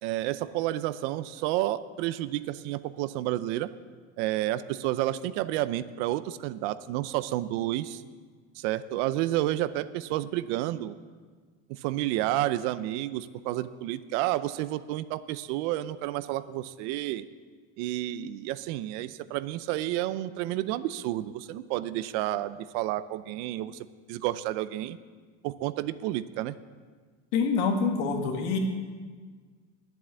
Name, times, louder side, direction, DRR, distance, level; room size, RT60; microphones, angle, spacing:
voice 1, 0.0-3.7 4.2-8.0 8.6-11.0 11.7-17.3 17.8-25.0 25.4-26.5, right 14 dB, 80° right, 15 dB, 0.6 m, -30 dB
voice 2, 27.3-28.6, left 5 dB, 85° left, 3 dB, 1.9 m, -26 dB
11.0 x 7.9 x 7.4 m, 1.5 s
cardioid pair, 140°, 34 cm